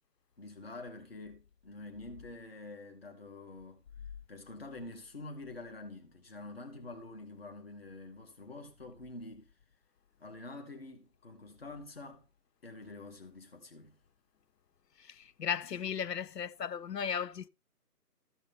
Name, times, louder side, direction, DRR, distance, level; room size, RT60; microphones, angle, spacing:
voice 1, 0.4-3.8 4.3-9.5 10.2-12.3 12.6-14.0, left 2 dB, 35° left, 1.6 m, -47 dB
voice 2, 15.4-17.5, left 7 dB, 75° left, 0.6 m, -35 dB
14.0 x 5.4 x 3.5 m
figure-of-eight pair, 160°, 49 cm